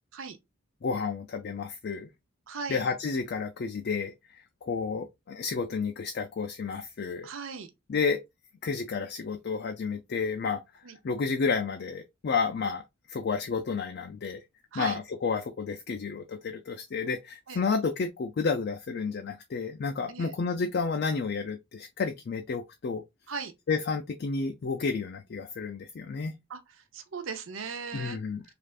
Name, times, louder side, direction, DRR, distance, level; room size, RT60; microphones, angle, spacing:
voice 1, 0.8-2.1 2.7-4.1 4.6-7.3 7.9-8.2 8.6-10.6 11.0-12.8 13.1-14.4 14.7-23.0 23.7-26.3 27.9-28.4, left 5 dB, 50° left, 0.4 m, -31 dB
voice 2, 2.5-2.8 7.2-7.7 10.8-11.0 14.7-15.0 17.5-17.6 20.1-20.3 23.3-23.5 26.5-26.6 26.9-28.2, right 5 dB, 65° right, 0.5 m, -37 dB
3.3 x 2.4 x 2.4 m
head